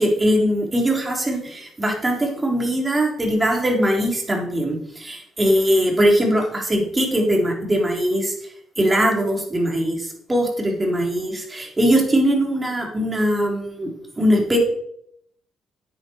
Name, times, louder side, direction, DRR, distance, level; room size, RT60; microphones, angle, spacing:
voice 1, 0.0-8.3 8.8-13.9 14.2-14.6, equal, 25° right, 0 dB, 4.1 m, -21 dB
9.6 x 8.9 x 4.8 m, 0.70 s
supercardioid pair, 60°, 0 cm